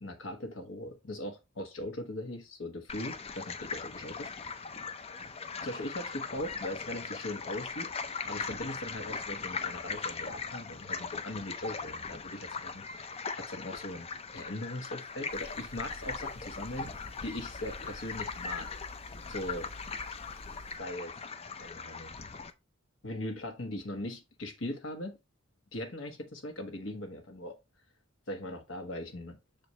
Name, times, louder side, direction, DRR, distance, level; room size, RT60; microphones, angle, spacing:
voice 1, 0.0-4.3 5.6-7.9 8.3-13.1 13.3-16.9 17.2-18.7 19.3-19.7 20.8-21.1 21.6-22.2 23.0-25.2 25.7-27.6 28.3-29.4, left 1 dB, 70° left, 1.4 m, -40 dB
sound 1, 2.9-22.5, left 5 dB, 30° left, 0.5 m, -40 dB
sound 2, 15.3-20.8, left 1 dB, 85° left, 1.8 m, -50 dB
6.8 x 4.5 x 3.1 m
head